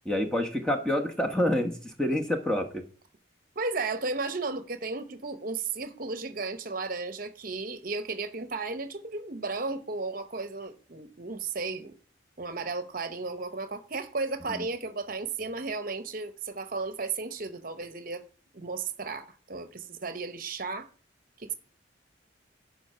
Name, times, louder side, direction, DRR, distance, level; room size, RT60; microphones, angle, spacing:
voice 1, 0.0-2.8 14.5-14.7, left 1 dB, 5° left, 1.0 m, -28 dB
voice 2, 3.6-11.9 12.4-18.2 18.5-20.9 21.4-21.5, right 3 dB, 45° right, 0.9 m, -34 dB
11.5 x 5.3 x 5.6 m
head